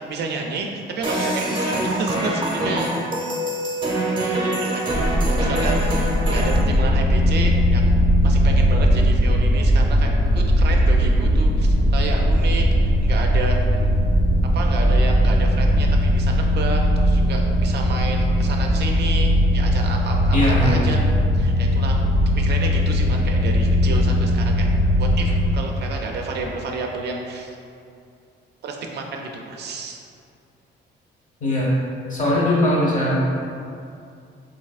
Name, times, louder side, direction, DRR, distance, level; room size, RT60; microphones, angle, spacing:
voice 1, 0.1-2.9 4.0-5.0 5.2-6.0 6.3-7.8 8.2-13.6 14.5-21.0 21.3-24.7 25.0-27.6 28.6-30.0, right 3 dB, 60° right, 1 dB, 0.4 m, -31 dB
sound 1, 1.0-6.6, right 1 dB, 25° right, 0.7 m, -24 dB
sound 2, 4.9-24.5, equal, 15° left, 0.4 m, -24 dB
sound 3, 6.4-25.5, equal, 85° left, 0.7 m, -20 dB
voice 2, 20.3-20.8 31.4-31.8 32.1-33.2, left 1 dB, 40° left, -5 dB, 0.9 m, -20 dB
3.2 x 2.6 x 2.4 m, 2.4 s
cardioid pair, 90°, 20 cm